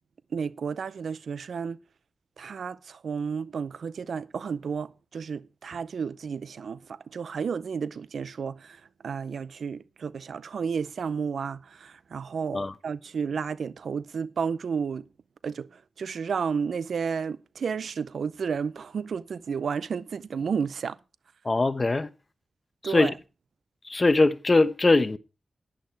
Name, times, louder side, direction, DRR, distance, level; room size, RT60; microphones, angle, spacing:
voice 1, 0.3-1.8 2.4-15.1 15.4-21.0 22.8-23.1, right 6 dB, 90° right, 0.5 m, -32 dB
voice 2, 21.4-22.1 22.8-23.1 23.9-25.2, left 2 dB, 40° left, 1.0 m, -21 dB
11.0 x 10.5 x 4.5 m
cardioid pair, 50°, 0 cm